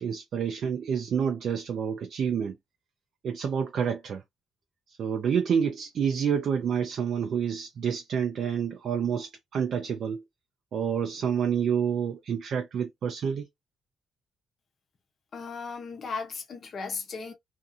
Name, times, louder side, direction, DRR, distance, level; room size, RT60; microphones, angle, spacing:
voice 1, 0.0-2.6 3.2-4.2 4.9-10.2 10.7-13.5, right 7 dB, 50° right, 0.3 m, -28 dB
voice 2, 15.3-17.3, left 4 dB, 35° left, 0.6 m, -36 dB
2.5 x 2.4 x 2.5 m
cardioid pair, 180°, 0 cm